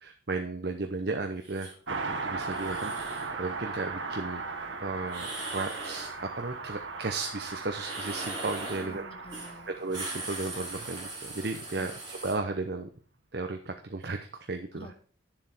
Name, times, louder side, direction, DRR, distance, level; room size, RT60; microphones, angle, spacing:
voice 1, 0.0-1.7 2.0-2.9 3.4-4.4 4.8-9.1 9.8-12.9 13.3-14.9, right 3 dB, 55° right, 5 dB, 0.8 m, -34 dB
sound 1, 1.4-1.7 2.4-3.3 5.1-6.1 7.7-8.9 9.3-9.5 9.8-12.3, right 2 dB, 25° right, 4.7 m, -40 dB
Car passing by, 1.9-11.8 12.1-12.2, right 4 dB, 75° right, 1.4 m, -38 dB
voice 2, 8.6-9.7 11.8-11.9 14.7-14.9, equal, 30° left, 6 dB, 1.3 m, -48 dB
9.8 x 7.4 x 4.4 m, 0.42 s
head